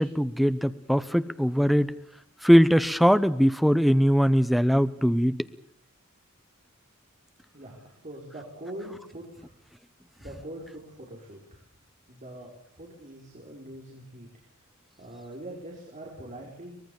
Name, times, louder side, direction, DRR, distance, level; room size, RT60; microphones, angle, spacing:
voice 1, 0.0-1.9 2.4-5.5, equal, ahead, 13 dB, 0.9 m, -21 dB
voice 2, 7.5-9.6 10.2-11.6 12.1-14.3 15.0-16.8, right 1 dB, 35° right, -1 dB, 5.2 m, -43 dB
24.5 x 20.5 x 7.1 m, 0.70 s
head